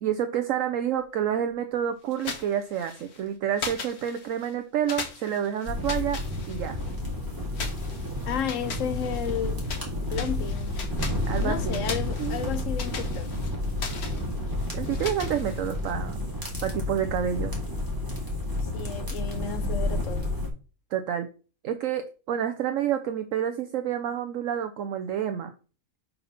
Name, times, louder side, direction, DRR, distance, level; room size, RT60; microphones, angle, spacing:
voice 1, 0.0-6.2 6.5-6.8 11.3-12.4 14.7-16.3 16.6-17.5 20.9-21.3 21.6-25.5, right 9 dB, 70° right, 1.0 m, -29 dB
sound 1, 2.1-3.2 3.6-4.5 4.9-7.0 7.5-9.9 10.1-15.9, left 5 dB, 90° left, 1.7 m, -39 dB
sound 2, 5.6-20.5, left 1 dB, 15° right, 2.0 m, -31 dB
voice 2, 8.2-9.6 10.1-10.8 11.4-13.3 18.7-20.3, left 8 dB, 65° left, 1.0 m, -32 dB
5.4 x 4.3 x 5.6 m
omnidirectional pair, 1.5 m